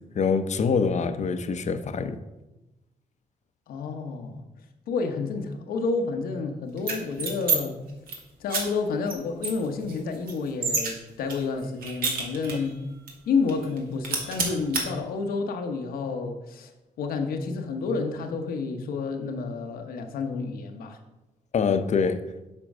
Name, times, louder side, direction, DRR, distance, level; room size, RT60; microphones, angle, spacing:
voice 1, 0.2-2.2 21.5-22.2, left 5 dB, 50° left, 0.7 m, -25 dB
voice 2, 3.7-4.4 4.9-7.8 8.4-12.8 13.3-16.7 17.0-21.0, left 4 dB, 90° left, 1.0 m, -30 dB
sound 1, 6.8-7.6 7.9-8.2 8.5-8.6 9.1-9.2 9.4-10.9 11.3-12.7 13.1-13.2 13.5-13.8 14.0-14.8, right 4 dB, 80° right, 1.9 m, -28 dB
7.6 x 4.5 x 6.1 m
cardioid pair, 80°, 15 cm